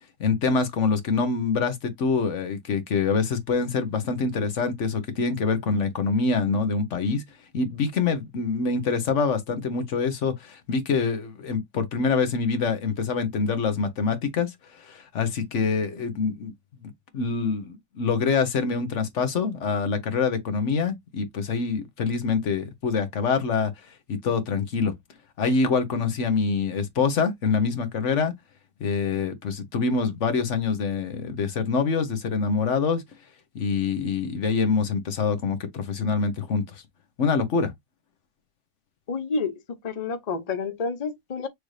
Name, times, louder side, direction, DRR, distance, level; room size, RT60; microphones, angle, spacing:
voice 1, 0.2-7.2 7.5-16.5 16.8-23.7 24.1-24.9 25.4-28.3 28.8-33.0 33.5-36.6 37.2-37.7, left 5 dB, 50° left, 1.1 m, -25 dB
voice 2, 39.1-41.5, left 4 dB, 70° left, 0.3 m, -29 dB
6.4 x 2.6 x 3.2 m
omnidirectional pair, 1.9 m